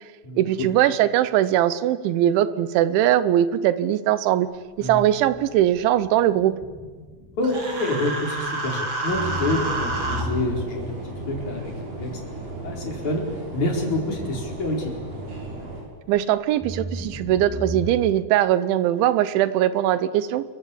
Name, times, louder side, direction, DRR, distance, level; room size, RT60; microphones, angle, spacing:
voice 1, 0.4-4.5 4.8-6.5 16.1-20.4, right 12 dB, 90° right, 15 dB, 3.4 m, -20 dB
sound 1, 4.5-8.7 9.1-16.2 16.6-17.9, right 1 dB, ahead, 5.8 m, -37 dB
voice 2, 7.4-10.9 11.3-11.7 12.0-12.2 12.6-13.2 13.5-15.0, left 2 dB, 40° left, 1 dB, 5.4 m, -27 dB
Human voice, 7.4-10.2, right 2 dB, 30° right, 3.8 m, -29 dB
sound 2, 9.1-15.8, right 2 dB, 60° right, 7.8 m, -36 dB
28.0 x 23.0 x 8.5 m, 1.5 s
omnidirectional pair, 5.2 m